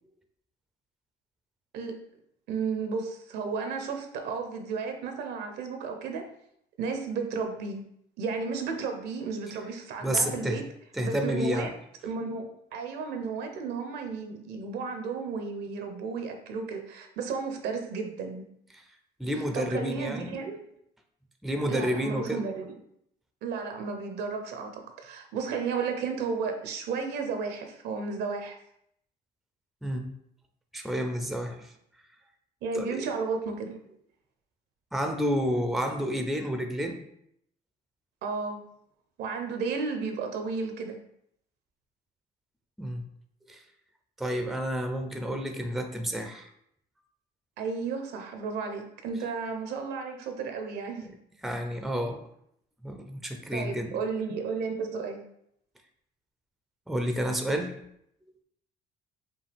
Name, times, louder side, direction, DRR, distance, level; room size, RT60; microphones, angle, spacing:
voice 1, 2.5-6.2 6.8-7.8 8.2-10.6 11.0-11.7 12.0-18.5 19.5-20.6 21.7-22.7 23.4-28.6 32.6-33.8 38.2-38.6 39.2-41.0 47.6-51.1 53.5-55.2, right 5 dB, 75° right, 5 dB, 0.7 m, -33 dB
voice 2, 10.0-10.6 10.9-11.7 19.2-20.4 21.4-22.5 29.8-30.1 30.7-31.7 32.7-33.1 34.9-37.0 42.8-43.0 43.5-43.6 44.2-46.5 51.4-52.2 52.8-54.0 56.9-57.8, equal, ahead, 5 dB, 0.5 m, -30 dB
5.5 x 2.4 x 3.4 m, 0.73 s
cardioid pair, 110°, 17 cm